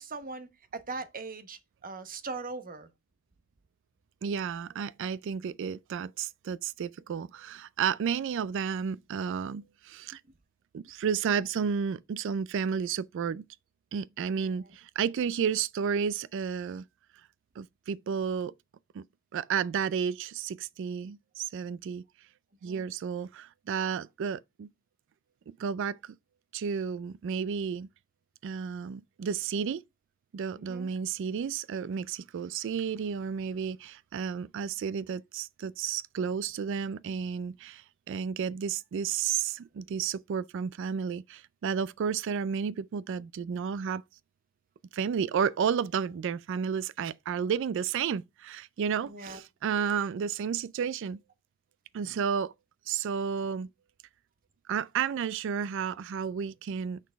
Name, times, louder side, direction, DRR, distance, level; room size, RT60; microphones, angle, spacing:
voice 1, 0.0-2.9 14.3-14.5 22.6-22.8 30.5-30.9 49.0-49.4, right 3 dB, 40° right, 0.9 m, -40 dB
voice 2, 4.2-10.2 10.7-13.5 13.9-16.8 17.6-18.5 18.9-19.0 19.3-22.0 22.6-24.7 25.6-26.2 26.5-27.9 28.4-29.8 30.3-44.0 44.9-51.2 51.9-52.5 52.9-53.7 54.7-57.0, right 7 dB, 60° right, 0.3 m, -32 dB
6.6 x 6.0 x 3.5 m
head